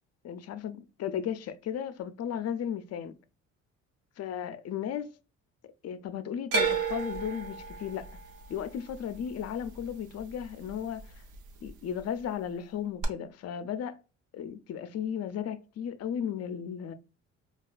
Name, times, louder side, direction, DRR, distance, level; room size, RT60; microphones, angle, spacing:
voice 1, 0.2-3.1 4.2-5.1 5.8-8.1 8.5-11.1 11.6-14.0 14.3-16.9, left 8 dB, 55° left, 0.5 m, -35 dB
sound 1, 6.5-10.7 11.0-11.7 13.0-13.1, right 5 dB, 85° right, 0.8 m, -33 dB
4.1 x 2.3 x 2.3 m
cardioid pair, 90°, 30 cm